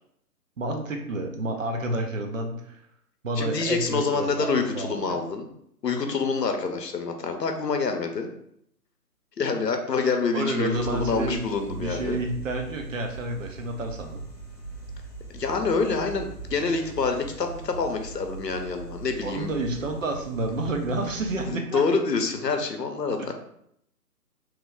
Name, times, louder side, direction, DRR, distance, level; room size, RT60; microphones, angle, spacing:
voice 1, 0.6-2.8 3.2-5.2 10.3-11.4 11.7-14.3 19.2-21.8 23.2-23.3, right 2 dB, 55° right, 3 dB, 0.6 m, -30 dB
voice 2, 3.4-5.5 5.8-8.3 9.4-12.2 15.3-19.5 21.5-23.3, left 4 dB, 85° left, 5 dB, 0.7 m, -27 dB
sound 1, 10.7-21.5, right 3 dB, 25° left, 0.7 m, -40 dB
3.0 x 2.2 x 3.6 m, 0.72 s
figure-of-eight pair, 145°, 48 cm